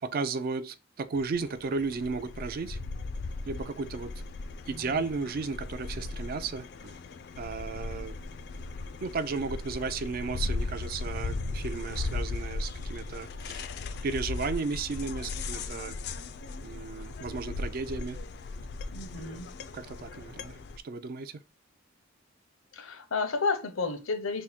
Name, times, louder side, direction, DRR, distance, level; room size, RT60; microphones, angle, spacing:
voice 1, 0.0-2.8 3.5-4.1 4.7-7.0 7.4-8.2 9.0-13.7 14.0-16.0 16.6-18.2 19.1-19.4 19.7-20.6 20.8-21.3, right 4 dB, 45° right, 0.3 m, -34 dB
sound 1, 1.1-20.8, left 3 dB, 55° left, 0.3 m, -37 dB
voice 2, 4.7-5.1 18.9-19.5 22.7-24.4, left 4 dB, 85° left, 0.7 m, -32 dB
3.7 x 2.1 x 4.2 m
head